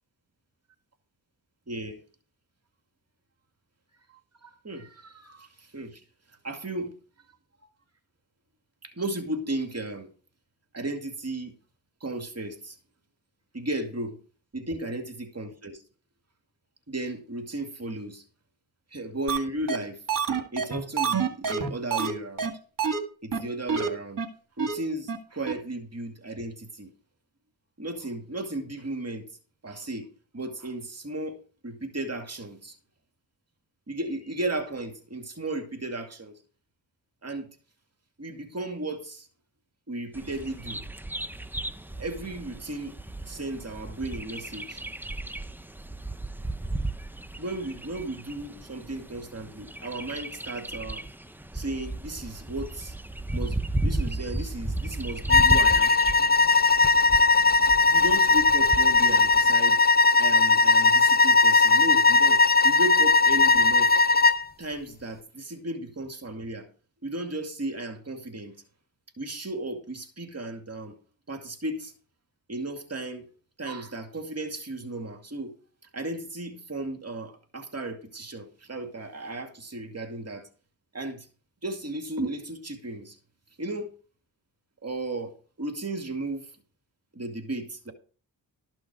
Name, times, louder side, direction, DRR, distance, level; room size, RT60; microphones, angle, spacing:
voice 1, 1.7-2.0 4.4-6.0 6.4-6.9 8.8-10.1 10.7-11.5 12.0-12.8 13.5-14.2 14.5-15.8 16.9-18.2 18.9-20.0 20.5-22.5 23.2-24.2 24.6-26.9 27.8-29.3 29.6-30.1 30.3-31.4 31.6-32.8 33.9-36.4 37.2-37.5 38.2-39.3 39.9-40.9 42.0-43.0 43.3-44.8 47.4-51.0 51.5-52.9 53.3-55.9 57.9-59.9 60.2-64.0 64.6-66.7 67.0-68.5 69.2-70.9 71.3-71.9 72.5-73.3 73.6-75.5 75.9-80.5 80.9-81.3 81.6-83.2 83.6-83.9 84.8-85.3 85.6-86.5 87.1-87.9, right 2 dB, 40° right, 2.3 m, -35 dB
sound 1, 19.3-19.4 19.7-19.8 20.1-22.1 22.4-22.5 22.8-23.0 23.3-23.4 23.7-23.9 24.2-24.3 24.6-24.7 25.1-25.2 25.5-25.6, right 6 dB, 60° right, 2.2 m, -26 dB
Bird vocalization bird call bird song, 40.1-59.5, right 1 dB, 5° right, 0.9 m, -35 dB
sound 2, 55.3-64.4, left 3 dB, 25° left, 0.7 m, -19 dB
13.5 x 6.2 x 4.8 m
cardioid pair, 55°, 38 cm